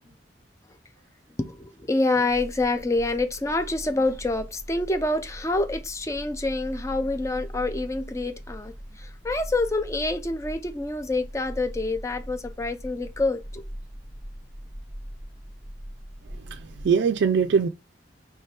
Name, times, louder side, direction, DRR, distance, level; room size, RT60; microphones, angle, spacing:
voice 1, 1.4-13.6, left 2 dB, 15° left, 0.5 m, -27 dB
sound 1, 2.3-16.9, equal, 70° left, 1.7 m, -41 dB
voice 2, 16.4-17.7, right 6 dB, 70° right, 0.3 m, -22 dB
4.5 x 3.2 x 3.2 m
head